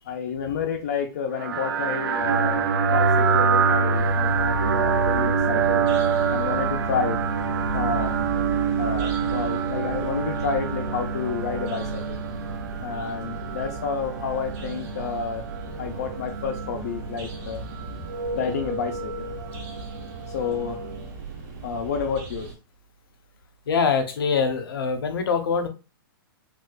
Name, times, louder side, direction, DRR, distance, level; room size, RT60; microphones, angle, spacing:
voice 1, 0.1-5.9 6.3-7.2 7.7-8.2 8.8-12.2 12.8-15.5 15.8-17.6 17.9-18.1 18.3-19.3 20.3-20.8 21.6-22.5, left 6 dB, 45° left, 4 dB, 0.5 m, -30 dB
sound 1, 1.4-21.1, right 5 dB, 80° right, 0.6 m, -26 dB
sound 2, 3.9-22.5, right 4 dB, 25° right, 0.9 m, -37 dB
voice 2, 23.7-25.7, left 5 dB, 80° left, 6 dB, 0.8 m, -23 dB
4.2 x 2.4 x 2.3 m, 0.30 s
hypercardioid pair, 180°, 12 cm